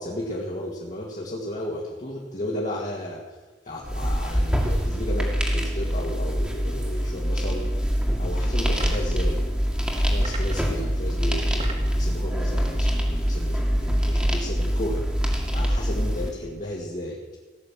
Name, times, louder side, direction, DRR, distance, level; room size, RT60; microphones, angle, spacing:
voice 1, 0.0-3.4 3.6-9.5 9.9-17.2, left 1 dB, 40° left, -4 dB, 2.1 m, -34 dB
sound 1, 3.8-16.3, equal, 5° right, 2.1 m, -24 dB
sound 2, 8.8-9.2 10.2-10.8 11.3-12.0, right 3 dB, 35° right, 2.3 m, -38 dB
17.0 x 6.7 x 8.9 m, 1.3 s
head